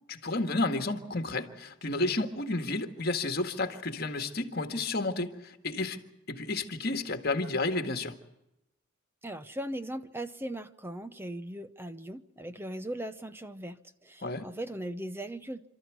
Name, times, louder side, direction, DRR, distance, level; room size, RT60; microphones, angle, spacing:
voice 1, 0.1-6.0 6.3-8.2 14.2-14.5, left 2 dB, 50° left, 6 dB, 1.9 m, -31 dB
voice 2, 9.2-15.7, right 1 dB, 10° right, 10 dB, 0.7 m, -39 dB
28.5 x 13.5 x 9.5 m, 0.90 s
head